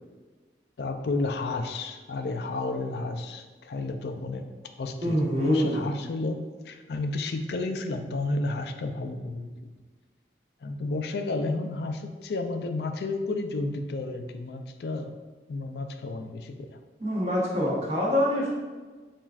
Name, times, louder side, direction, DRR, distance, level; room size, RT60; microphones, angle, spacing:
voice 1, 0.8-4.5 4.8-9.7 10.6-15.1 15.5-16.7, left 2 dB, 70° left, 6 dB, 0.4 m, -32 dB
voice 2, 5.0-5.8 17.0-18.5, equal, 35° right, -5 dB, 1.0 m, -25 dB
7.1 x 2.5 x 2.4 m, 1.3 s
head